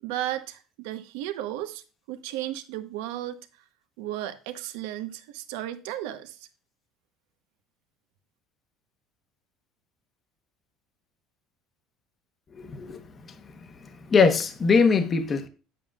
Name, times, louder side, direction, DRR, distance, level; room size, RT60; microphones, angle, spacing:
voice 1, 0.0-3.4 4.0-6.4, right 13 dB, 85° right, 0.9 m, -34 dB
voice 2, 12.5-13.0 14.1-15.5, left 5 dB, 30° left, 0.9 m, -21 dB
9.0 x 7.6 x 2.4 m
supercardioid pair, 120°, 0 cm